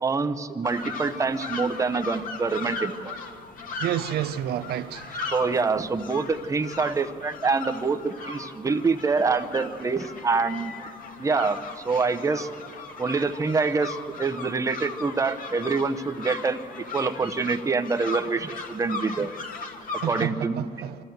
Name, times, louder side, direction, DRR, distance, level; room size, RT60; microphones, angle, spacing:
voice 1, 0.0-3.2 5.2-10.7 11.2-12.5 13.0-16.6 16.9-19.3 20.1-20.6, right 4 dB, 20° right, 0.8 m, -26 dB
sound 1, 0.6-20.3, left 4 dB, 55° left, 2.0 m, -38 dB
voice 2, 3.8-5.1 20.0-21.0, right 11 dB, 70° right, 0.7 m, -29 dB
25.0 x 14.0 x 7.9 m
cardioid pair, 110°, 17 cm